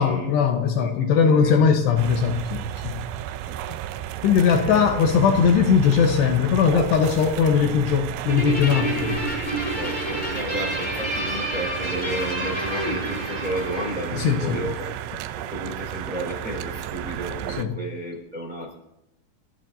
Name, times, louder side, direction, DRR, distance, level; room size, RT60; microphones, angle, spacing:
voice 1, 0.0-3.0 4.2-9.3 14.2-14.6 17.6-17.7, left 6 dB, 75° left, 3 dB, 3.1 m, -20 dB
voice 2, 0.8-1.7 3.4-3.6 4.3-5.1 9.8-15.0 15.4-18.7, right 1 dB, 10° right, -2 dB, 4.8 m, -33 dB
sound 1, 2.0-17.7, right 12 dB, 80° right, 2.7 m, -33 dB
Guitar, 8.3-15.0, right 1 dB, 5° left, 4.1 m, -29 dB
29.5 x 14.0 x 2.7 m, 0.88 s
omnidirectional pair, 5.1 m